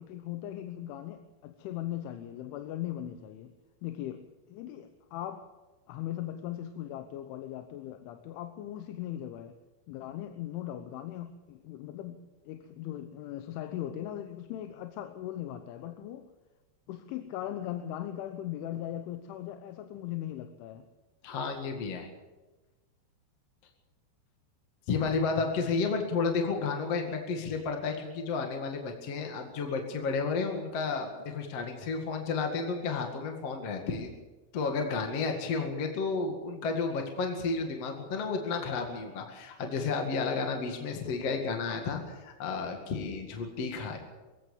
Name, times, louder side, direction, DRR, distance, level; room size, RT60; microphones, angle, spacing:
voice 1, 0.0-3.6 3.8-5.5 5.9-9.6 9.9-12.2 12.5-16.3 16.9-20.9, left 12 dB, 80° left, 9 dB, 3.4 m, -39 dB
voice 2, 21.2-22.1 24.9-34.2 34.5-44.0, left 4 dB, 45° left, 3 dB, 2.2 m, -32 dB
22.5 x 16.5 x 7.2 m, 1.2 s
omnidirectional pair, 5.5 m